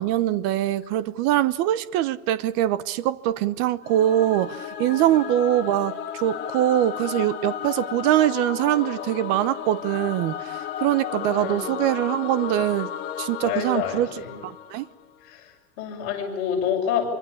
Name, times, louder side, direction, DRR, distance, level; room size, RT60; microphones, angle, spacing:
voice 1, 0.0-12.9 13.2-14.9, right 13 dB, 30° right, 0.9 m, -23 dB
Singing / Musical instrument, 3.8-15.1, left 9 dB, 25° left, 2.6 m, -34 dB
voice 2, 11.1-11.7 13.4-14.4 15.2-17.1, left 8 dB, 45° left, 6.4 m, -28 dB
27.0 x 24.5 x 8.6 m
supercardioid pair, 165°, 45 cm